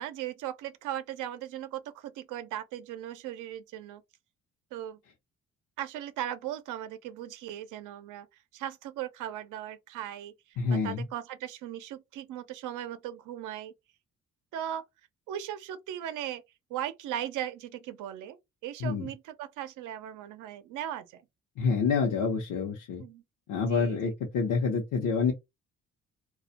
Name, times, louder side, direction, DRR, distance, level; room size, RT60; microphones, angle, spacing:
voice 1, 0.0-4.0 4.7-5.0 5.8-8.3 8.5-10.3 10.7-13.7 14.5-14.8 15.3-16.4 16.7-18.4 18.6-21.2 23.0-23.2 23.6-24.1, right 11 dB, 90° right, 0.5 m, -38 dB
voice 2, 10.6-11.0 18.8-19.1 21.6-23.0 23.5-25.3, left 5 dB, 80° left, 0.8 m, -27 dB
2.3 x 2.1 x 2.7 m
cardioid pair, 90°, 30 cm